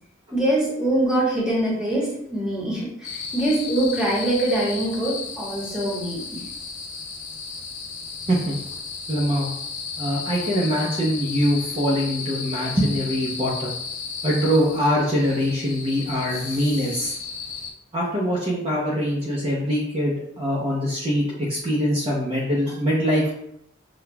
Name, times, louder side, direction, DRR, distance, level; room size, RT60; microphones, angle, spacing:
voice 1, 0.3-6.4, right 1 dB, 5° right, -6 dB, 1.1 m, -24 dB
sound 1, 3.0-17.7, left 5 dB, 70° left, 0.8 m, -34 dB
voice 2, 9.1-9.5 10.0-13.7 14.2-17.1 17.9-23.3, equal, 30° right, -5 dB, 0.6 m, -23 dB
5.7 x 2.3 x 2.2 m, 0.75 s
head